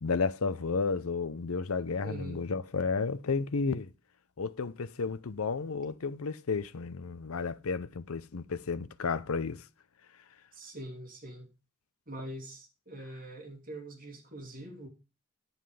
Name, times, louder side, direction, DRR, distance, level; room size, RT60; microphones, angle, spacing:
voice 1, 0.0-3.9 4.4-9.6, left 4 dB, 75° left, 0.6 m, -32 dB
voice 2, 2.0-2.4 10.5-11.5 12.1-14.9, right 1 dB, 40° right, 2.7 m, -43 dB
9.5 x 8.0 x 4.9 m
head